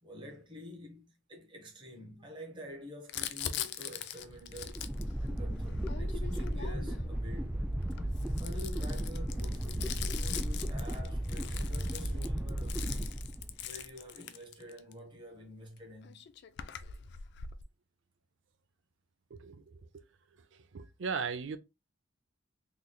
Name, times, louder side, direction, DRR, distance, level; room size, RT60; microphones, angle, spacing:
voice 1, 0.0-4.9 5.2-7.7 8.4-12.9 13.6-16.2, left 1 dB, 25° right, 1.0 m, -48 dB
Crumpling crinkling, 3.1-7.1 7.8-14.9 15.8-15.9 16.0-17.6, left 9 dB, 60° left, 0.4 m, -42 dB
sound 1, 4.3-13.8, right 1 dB, 5° right, 0.4 m, -35 dB
voice 2, 19.3-20.0 20.7-21.6, right 5 dB, 65° right, 0.5 m, -37 dB
3.9 x 3.2 x 2.2 m
head